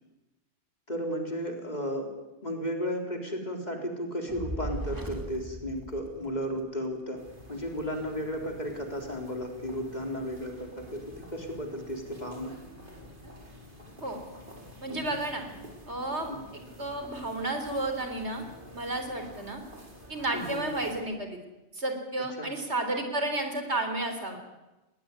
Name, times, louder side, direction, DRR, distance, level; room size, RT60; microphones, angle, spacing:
voice 1, 0.9-2.1 2.4-7.2 7.5-11.0 11.3-12.5 14.9-15.1 16.3-16.4 20.3-20.6 22.4-22.5, equal, 40° left, 2 dB, 4.1 m, -34 dB
Fire, 4.3-6.7, right 1 dB, 15° right, 2.1 m, -38 dB
sound 1, 7.2-21.0, equal, 50° right, 5.2 m, -49 dB
voice 2, 14.8-15.4 15.9-18.4 18.8-19.6 20.1-21.4 21.7-24.4, right 2 dB, 70° right, 6 dB, 3.9 m, -32 dB
21.0 x 19.0 x 9.8 m, 1.0 s
omnidirectional pair, 1.2 m